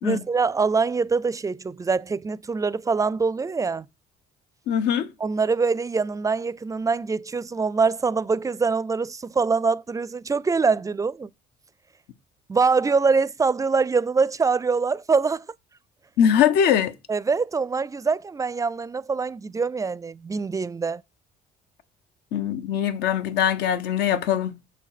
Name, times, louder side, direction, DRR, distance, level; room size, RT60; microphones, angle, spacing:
voice 1, 0.0-3.9 5.2-11.3 12.5-15.5 17.1-21.0, right 4 dB, 20° right, 0.4 m, -24 dB
voice 2, 4.7-5.1 16.2-16.9 22.3-24.5, left 9 dB, 80° left, 1.1 m, -21 dB
7.2 x 7.2 x 5.8 m
cardioid pair, 110°, 17 cm